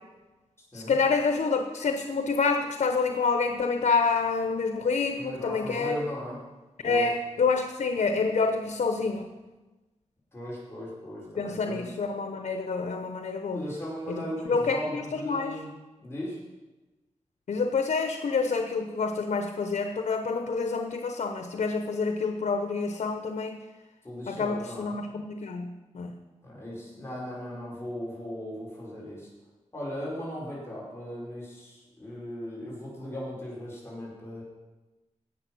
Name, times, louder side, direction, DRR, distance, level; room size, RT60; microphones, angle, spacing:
voice 1, 0.7-6.0 6.8-9.3 11.4-13.6 14.1-15.5 17.5-23.6 24.3-26.1, left 4 dB, 85° left, 6 dB, 0.9 m, -28 dB
voice 2, 5.2-6.4 6.8-7.1 10.3-11.9 13.5-15.7 16.0-16.4 24.0-24.9 26.4-29.3 29.7-34.4, equal, 20° left, -6 dB, 4.9 m, -37 dB
17.5 x 6.8 x 6.2 m, 1.1 s
wide cardioid pair, 90°, 12 cm